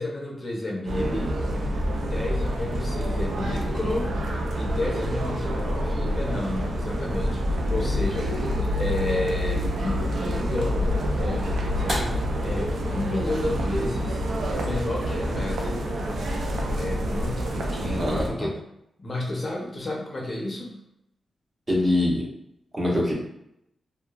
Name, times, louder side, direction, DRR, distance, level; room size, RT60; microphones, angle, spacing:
voice 1, 0.0-1.4 2.0-14.2 14.6-15.8 16.7-18.6 19.0-20.8, left 2 dB, 35° left, -2 dB, 0.5 m, -32 dB
sound 1, 0.9-18.3, equal, 85° right, 0.4 m, -27 dB
sound 2, 10.4-16.8, equal, 50° right, 1.4 m, -41 dB
voice 2, 18.0-18.5 21.7-22.2 22.7-23.1, left 1 dB, 30° right, -4 dB, 0.7 m, -23 dB
2.7 x 2.1 x 2.3 m, 0.80 s
wide cardioid pair, 105°, 0 cm